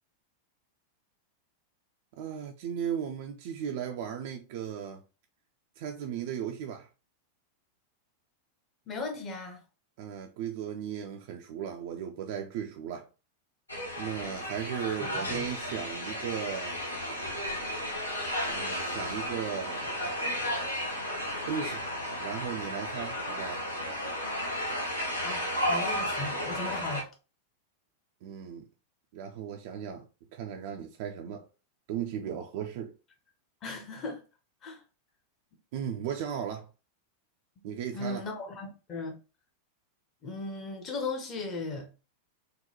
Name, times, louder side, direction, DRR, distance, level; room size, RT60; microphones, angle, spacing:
voice 1, 2.2-5.0 5.8-6.9 10.0-13.1 14.0-16.8 18.5-20.0 21.5-21.8 22.2-23.6 28.2-28.7 29.1-30.1 30.3-31.5 31.9-32.9 35.7-36.7 37.6-38.2, right 8 dB, 50° right, 0.4 m, -36 dB
voice 2, 8.9-9.6 14.8-15.4 25.2-27.1 33.6-34.2 34.6-34.8 37.9-39.2 40.2-41.9, left 3 dB, 30° left, 0.9 m, -37 dB
sound 1, 13.7-27.0, equal, 80° left, 0.8 m, -33 dB
3.7 x 2.2 x 2.9 m
figure-of-eight pair, 90°, 0 cm